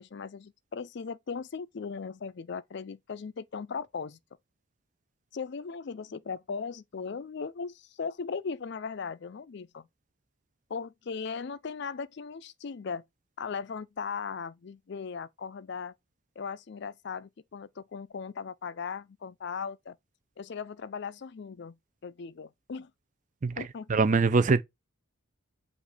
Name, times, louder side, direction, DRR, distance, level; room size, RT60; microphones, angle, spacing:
voice 1, 0.0-4.2 5.3-9.9 10.7-13.0 13.4-15.9 16.4-20.0 20.4-22.9 23.6-23.9, left 5 dB, 55° left, 0.4 m, -38 dB
voice 2, 23.9-24.6, right 4 dB, 35° right, 0.4 m, -23 dB
5.0 x 2.5 x 4.0 m
head